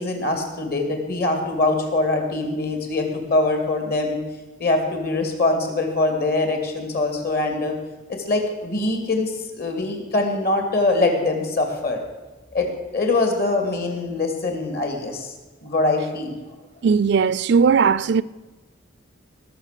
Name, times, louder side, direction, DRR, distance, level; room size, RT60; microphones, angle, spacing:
voice 1, 0.0-4.2 4.6-7.7 8.1-12.0 12.5-12.7 12.9-15.3 15.6-16.4, left 2 dB, 55° left, 2.5 m, -23 dB
voice 2, 16.8-18.2, right 5 dB, 60° right, 0.4 m, -18 dB
19.0 x 6.6 x 6.7 m
head